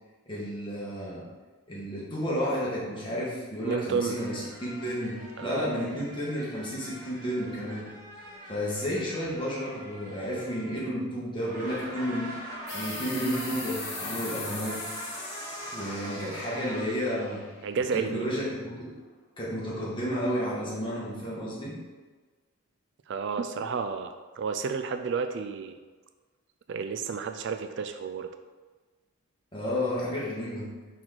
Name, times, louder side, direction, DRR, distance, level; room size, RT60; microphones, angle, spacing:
voice 1, 0.3-1.2 1.7-7.9 8.5-12.3 12.7-14.8 15.7-17.4 17.9-18.9 19.4-21.7 29.5-30.7, equal, 20° left, -7 dB, 1.8 m, -32 dB
voice 2, 3.7-4.2 5.4-5.7 17.6-18.3 23.1-25.8 26.7-28.3, right 5 dB, 55° right, 8 dB, 0.3 m, -31 dB
sound 1, 4.1-11.0 11.4-16.8, right 1 dB, 35° right, 1.8 m, -42 dB
sound 2, 12.7-17.9, left 3 dB, 50° left, 1.6 m, -40 dB
4.5 x 4.3 x 5.9 m, 1.4 s
head